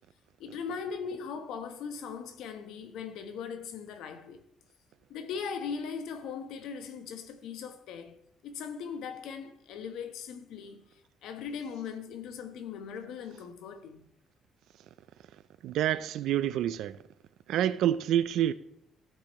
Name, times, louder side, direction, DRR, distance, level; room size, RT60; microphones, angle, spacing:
voice 1, 0.4-4.4 5.1-8.2 8.4-10.8 11.2-14.1, left 6 dB, 85° left, 1.2 m, -39 dB
voice 2, 15.6-17.0 17.5-18.5, right 11 dB, 75° right, 0.5 m, -27 dB
15.0 x 8.6 x 3.1 m
cardioid pair, 155°, 0 cm